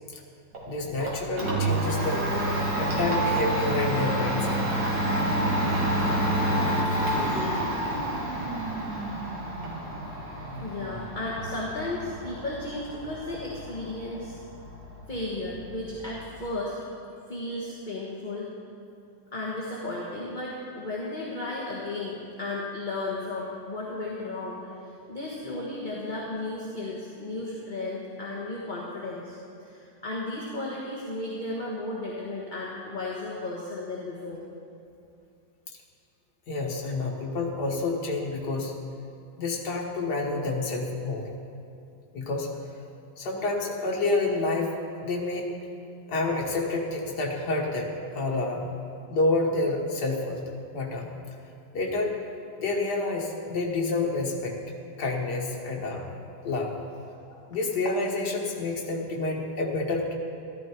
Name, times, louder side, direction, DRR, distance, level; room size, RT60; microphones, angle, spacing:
Domestic sounds home sounds, 0.5-16.4, right 1 dB, 75° right, 2.9 m, -29 dB
voice 1, 0.7-2.2 2.7-4.6 25.5-25.6 36.5-38.8 39.4-41.3 42.1-42.5 43.2-44.7 45.0-45.5 46.1-47.9 48.1-48.7 49.1-50.4 50.7-51.1 51.7-52.1 52.6-54.6 55.0-56.0 56.4-56.7 57.3-60.1, left 2 dB, 60° left, -1 dB, 2.1 m, -28 dB
voice 2, 10.6-14.4 15.1-16.8 17.3-18.5 19.3-24.7 25.1-34.5, left 2 dB, 25° left, -5 dB, 1.6 m, -34 dB
13.5 x 13.5 x 4.6 m, 2.6 s
omnidirectional pair, 2.0 m